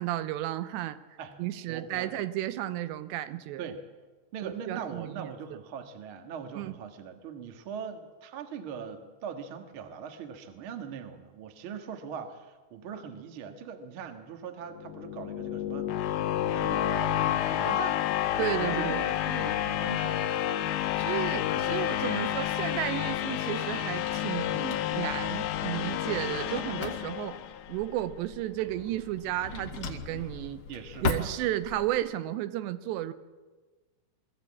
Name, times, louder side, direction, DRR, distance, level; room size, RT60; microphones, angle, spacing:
voice 1, 0.0-1.0 1.4-3.6 4.4-5.6 6.6-6.7 18.4-19.0 21.0-27.4 27.7-30.6 31.0-33.1, right 14 dB, 85° right, 12 dB, 3.1 m, -33 dB
voice 2, 1.7-2.1 3.6-3.8 4.3-18.0 18.4-20.4 28.6-28.7 30.7-31.3, right 7 dB, 60° right, 6 dB, 1.4 m, -41 dB
sound 1, 14.7-27.8, left 11 dB, 85° left, 3.2 m, -30 dB
Drawer open or close, 22.6-32.0, left 4 dB, 65° left, 1.5 m, -40 dB
22.5 x 14.5 x 8.6 m, 1.3 s
omnidirectional pair, 5.0 m